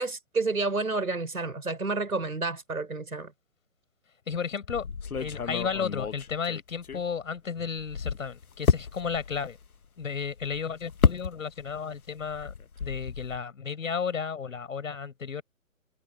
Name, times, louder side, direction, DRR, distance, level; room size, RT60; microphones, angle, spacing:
voice 1, 0.0-3.3, right 3 dB, 85° right, 6.4 m, -30 dB
voice 2, 4.3-4.9 5.2-9.6 10.0-12.5 12.8-15.4, left 6 dB, 65° left, 5.2 m, -33 dB
sound 1, 4.7-7.4 7.7-11.8 12.1-13.4, left 6 dB, 85° left, 1.2 m, -30 dB
figure-of-eight pair, 135°, 42 cm